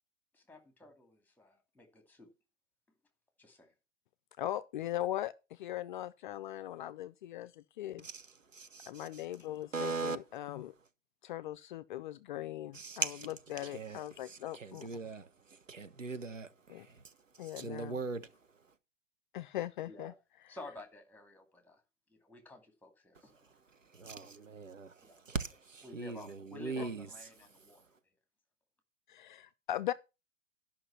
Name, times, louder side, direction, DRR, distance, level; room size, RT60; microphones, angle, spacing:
voice 1, 0.3-2.3 3.4-3.7 19.9-20.1 20.5-21.8 22.1-23.5 25.0-25.2 25.8-27.9, left 2 dB, 5° left, 2.6 m, -52 dB
voice 2, 4.4-8.1 8.9-10.7 11.2-14.9 16.7-16.9 17.4-17.9 19.3-20.1 26.8-26.9 29.1-29.9, left 13 dB, 40° left, 0.5 m, -40 dB
voice 3, 8.0-9.2 9.7-10.2 12.7-13.3 13.6-18.7 23.2-27.9, right 4 dB, 85° right, 1.3 m, -41 dB
12.5 x 5.9 x 5.8 m
figure-of-eight pair, 105°, 37 cm